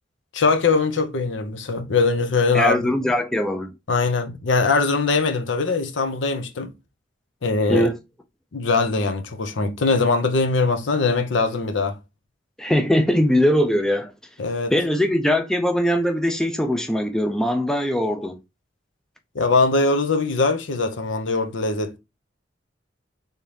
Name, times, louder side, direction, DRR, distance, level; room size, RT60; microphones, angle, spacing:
voice 1, 0.3-2.9 3.9-6.7 7.4-7.9 8.5-12.0 14.4-14.7 19.3-22.0, left 3 dB, 80° left, 0.7 m, -21 dB
voice 2, 2.5-3.7 7.7-8.0 12.6-14.1 14.7-18.4, equal, 5° left, 0.3 m, -21 dB
3.6 x 2.8 x 3.2 m
head